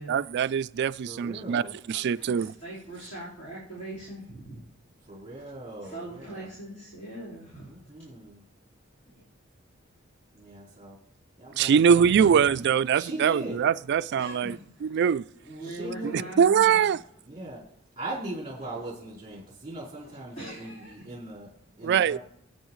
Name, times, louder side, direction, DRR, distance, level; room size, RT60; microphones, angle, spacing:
voice 1, 0.1-1.6 1.9-2.5 11.6-14.6 14.8-15.3 16.0-17.0 21.8-22.2, right 7 dB, 55° right, 0.3 m, -23 dB
voice 2, 1.0-1.8 5.0-6.5 7.6-8.4 10.3-11.0 11.4-12.0 12.3-12.5 12.9-13.6 15.6-16.3 17.2-17.6 18.0-21.5 21.8-22.2, right 2 dB, 25° right, 4.2 m, -39 dB
voice 3, 2.1-4.6 5.3-5.4 5.8-7.7 9.1-9.2 12.0-12.3 14.1-14.9 15.4-16.9 20.3-21.0, right 1 dB, 40° left, 4.2 m, -41 dB
22.5 x 8.7 x 3.1 m
head